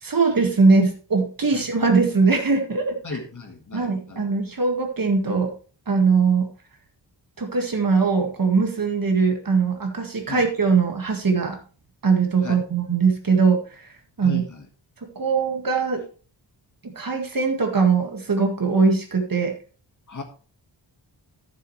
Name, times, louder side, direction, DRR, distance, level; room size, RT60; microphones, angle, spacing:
voice 1, 0.0-3.0 3.7-5.5 5.9-6.5 7.4-11.6 12.0-14.4 15.2-16.0 16.8-19.5, right 4 dB, 50° right, 3 dB, 1.9 m, -21 dB
voice 2, 3.0-4.2 10.3-10.4 12.4-12.6 14.2-14.6 20.1-20.2, left 4 dB, 40° left, 4 dB, 1.8 m, -35 dB
13.5 x 7.1 x 3.2 m, 0.39 s
wide cardioid pair, 130°, 45 cm